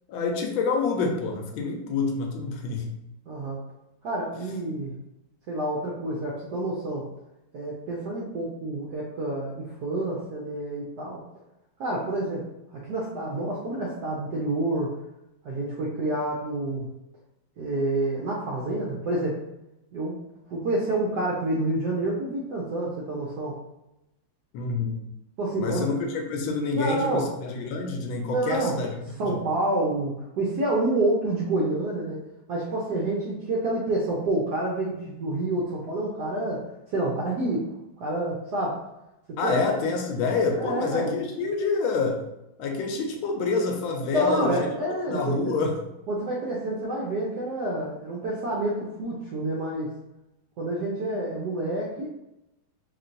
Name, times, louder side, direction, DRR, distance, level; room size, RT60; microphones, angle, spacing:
voice 1, 0.1-2.9 24.5-24.9 25.6-29.0 29.3-29.4 39.4-42.2 42.6-44.7 45.1-45.8, left 4 dB, 75° left, 2 dB, 1.3 m, -27 dB
voice 2, 3.3-3.6 4.0-4.9 5.5-7.0 7.5-11.2 11.8-12.4 12.7-14.9 15.4-16.9 17.6-19.4 19.9-20.2 20.5-23.6 25.4-25.9 26.7-27.3 28.2-28.7 29.2-32.2 32.5-36.6 36.9-37.7 38.0-38.8 39.4-39.6 40.6-41.1 44.1-45.6 46.1-49.9 50.6-52.1, right 1 dB, 75° right, -3 dB, 0.9 m, -28 dB
3.2 x 3.0 x 2.5 m, 0.90 s
omnidirectional pair, 2.3 m